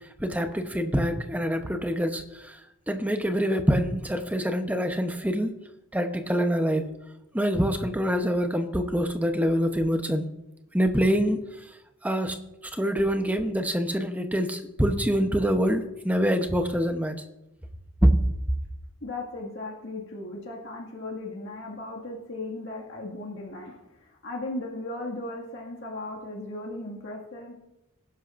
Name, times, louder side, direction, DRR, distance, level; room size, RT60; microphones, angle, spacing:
voice 1, 0.2-2.5 2.9-5.5 5.9-6.8 7.3-10.3 10.7-11.4 12.0-12.4 12.7-17.2 18.0-18.1, equal, 5° right, 6 dB, 0.9 m, -25 dB
voice 2, 19.0-27.5, left 2 dB, 60° left, -1 dB, 2.1 m, -37 dB
19.5 x 11.0 x 2.6 m, 0.91 s
head